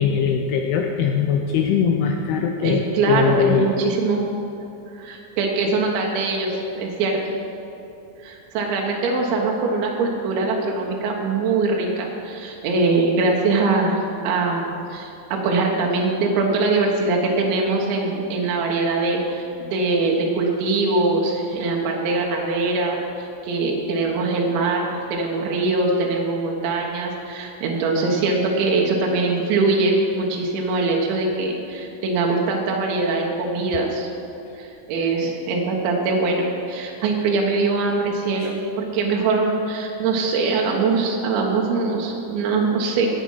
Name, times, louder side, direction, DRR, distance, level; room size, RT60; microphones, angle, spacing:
voice 1, 0.0-3.7 38.4-38.5, left 7 dB, 85° left, 3 dB, 2.2 m, -21 dB
voice 2, 2.6-4.2 4.9-7.2 8.2-14.7 14.9-34.1 34.6-43.1, right 3 dB, 80° right, -1 dB, 3.6 m, -22 dB
18.0 x 7.6 x 5.5 m, 2.8 s
omnidirectional pair, 5.3 m